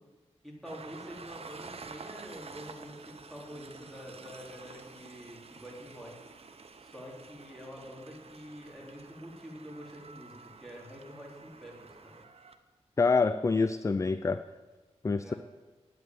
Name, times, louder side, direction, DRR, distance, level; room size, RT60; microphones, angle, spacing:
voice 1, 0.4-6.1 6.8-12.2 15.2-15.4, equal, ahead, -3 dB, 3.6 m, -46 dB
Train, 0.6-12.6, right 4 dB, 60° right, 0.9 m, -50 dB
voice 2, 13.0-14.4 15.0-15.3, left 4 dB, 25° left, 12 dB, 0.4 m, -26 dB
9.1 x 8.3 x 9.4 m, 1.3 s
wide cardioid pair, 90°, 12 cm